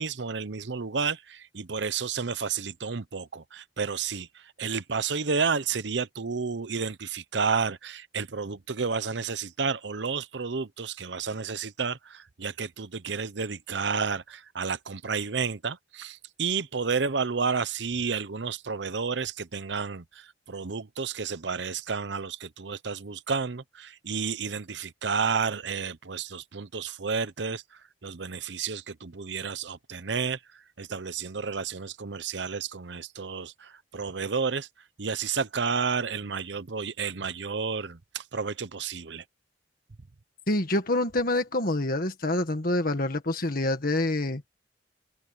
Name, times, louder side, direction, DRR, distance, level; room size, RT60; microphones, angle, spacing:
voice 1, 0.0-27.6 28.0-30.4 30.8-34.7 35.0-39.2, right 5 dB, 70° right, 0.9 m, -31 dB
voice 2, 40.5-44.4, left 2 dB, 55° left, 1.7 m, -26 dB
head